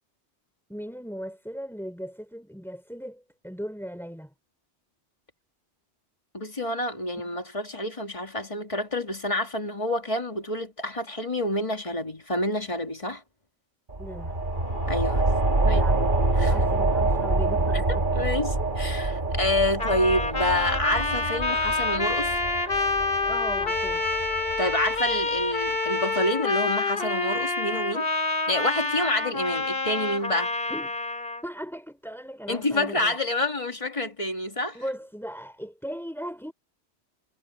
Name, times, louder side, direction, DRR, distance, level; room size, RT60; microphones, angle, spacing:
voice 1, 0.7-4.3 14.0-14.4 15.6-16.1 16.5-18.1 19.6-19.8 23.3-24.1 30.7-30.9 31.4-33.1 34.7-36.5, equal, ahead, 4.4 m, -38 dB
voice 2, 6.3-13.2 14.9-15.3 15.7-15.8 16.4-16.5 17.9-22.4 24.6-28.1 28.5-30.5 32.5-34.8, left 1 dB, 30° left, 2.1 m, -28 dB
sound 1, 13.9-25.1, right 2 dB, 45° right, 2.7 m, -26 dB
Trumpet, 19.8-31.4, left 3 dB, 55° left, 3.0 m, -27 dB
omnidirectional pair, 1.2 m